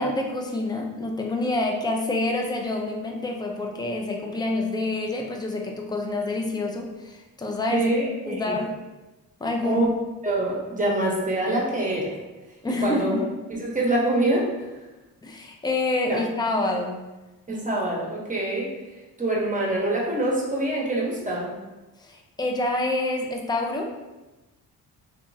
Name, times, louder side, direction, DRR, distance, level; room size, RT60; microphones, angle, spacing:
voice 1, 0.0-7.9 8.3-8.7 9.4-9.8 12.6-13.2 15.2-17.1 22.0-24.0, left 2 dB, 10° left, 1 dB, 0.4 m, -27 dB
voice 2, 7.7-8.6 9.6-9.9 10.2-12.1 12.8-13.1 13.5-14.5 16.1-16.2 17.5-18.7 19.2-21.6, right 1 dB, 20° right, -3 dB, 0.8 m, -25 dB
2.8 x 2.3 x 2.6 m, 1.1 s
cardioid pair, 65°, 42 cm